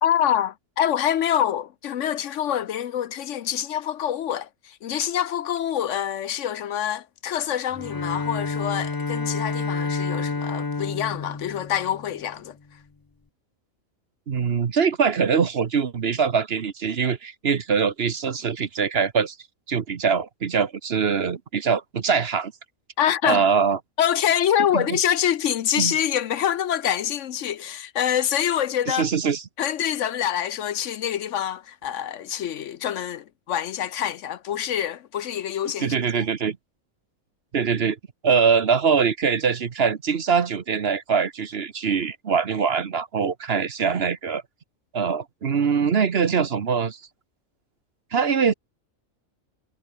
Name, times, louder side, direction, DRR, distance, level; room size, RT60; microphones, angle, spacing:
voice 1, 0.0-12.6 23.0-23.4 24.0-29.1 29.6-36.0, left 10 dB, 65° left, 1.0 m, -26 dB
Bowed string instrument, 7.7-12.3, left 4 dB, 25° left, 0.5 m, -29 dB
voice 2, 14.3-19.4 19.7-22.5 23.2-23.8 24.7-25.0 25.8-25.9 28.9-29.4 35.8-36.6 37.5-38.0 38.2-44.4 44.9-47.0 48.1-48.5, right 6 dB, 50° right, 1.2 m, -23 dB
omnidirectional pair, 1.4 m